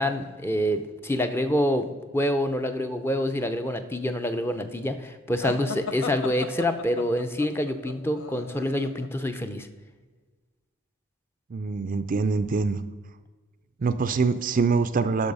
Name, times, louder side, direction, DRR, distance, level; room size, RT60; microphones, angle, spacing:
voice 1, 0.0-1.9 2.1-9.7, left 1 dB, 10° left, 8 dB, 0.6 m, -26 dB
sound 1, 5.4-9.1, left 5 dB, 80° left, 0.8 m, -36 dB
voice 2, 11.5-12.8 13.8-15.3, right 4 dB, 40° right, 12 dB, 0.4 m, -24 dB
11.5 x 5.7 x 5.4 m, 1.4 s
head